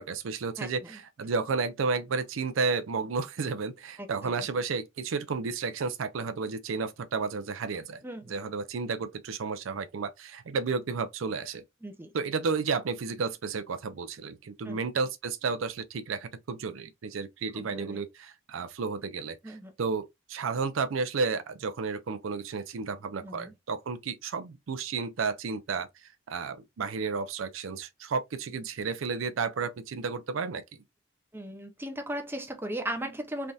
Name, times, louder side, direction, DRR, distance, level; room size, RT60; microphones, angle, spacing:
voice 1, 0.0-8.0 8.3-11.6 12.1-30.6, right 4 dB, 70° right, 0.5 m, -32 dB
voice 2, 0.6-1.0 4.0-4.5 8.0-8.3 11.8-12.1 14.6-14.8 17.5-18.0 19.4-19.7 23.2-23.5 31.3-33.5, right 1 dB, 10° right, 0.6 m, -37 dB
3.4 x 2.6 x 2.3 m
head